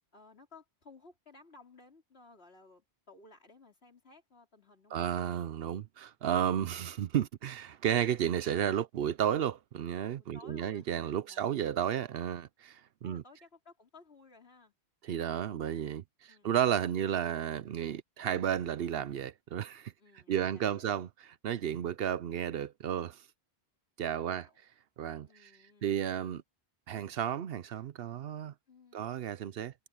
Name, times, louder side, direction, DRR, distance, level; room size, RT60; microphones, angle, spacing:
voice 1, 0.1-5.1 10.2-10.9 11.3-11.5 13.0-14.7 16.3-16.5 20.0-21.0 24.2-24.6 25.3-26.0 28.7-29.1, left 3 dB, 65° left, 4.0 m, -57 dB
voice 2, 4.9-13.2 15.0-19.9 20.3-23.2 24.0-24.5 25.0-25.5 25.8-26.4 26.9-28.5 28.9-29.7, right 9 dB, 65° right, 0.8 m, -33 dB
omnidirectional pair, 1.1 m